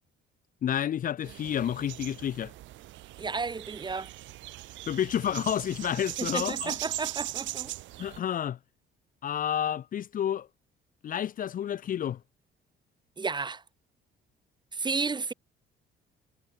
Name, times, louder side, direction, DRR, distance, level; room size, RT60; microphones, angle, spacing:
voice 1, 0.6-2.5 4.9-6.7 8.0-8.6 9.2-10.5 11.0-12.2, left 10 dB, 45° left, 0.8 m, -30 dB
sound 1, 1.2-8.2, right 16 dB, 80° right, 1.7 m, -39 dB
voice 2, 3.2-4.1 6.2-7.7 13.2-13.6 14.7-15.3, right 4 dB, 25° right, 3.3 m, -32 dB
cardioid pair, 125°, 19 cm